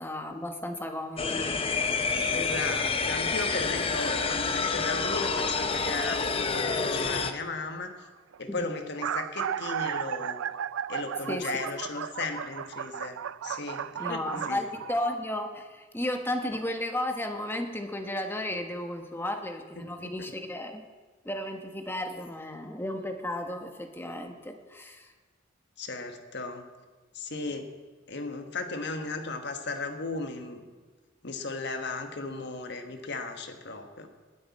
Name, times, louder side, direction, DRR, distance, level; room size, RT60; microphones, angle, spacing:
voice 1, 0.0-1.6 8.5-8.7 11.3-11.5 14.0-20.8 21.2-25.1, left 1 dB, 10° left, 5 dB, 1.1 m, -34 dB
sound 1, 1.2-7.3, left 4 dB, 30° left, 0.7 m, -28 dB
voice 2, 2.3-7.9 8.4-10.4 10.9-13.2 13.4-14.6 19.7-20.1 25.8-26.6 27.1-27.7 28.1-30.6 31.2-34.1, left 3 dB, 60° left, 6 dB, 1.4 m, -36 dB
sound 2, 6.9-7.2 8.1-8.2 8.3-8.4 8.8-15.1, right 8 dB, 90° right, 0.4 m, -34 dB
19.5 x 10.0 x 4.2 m, 1.4 s
head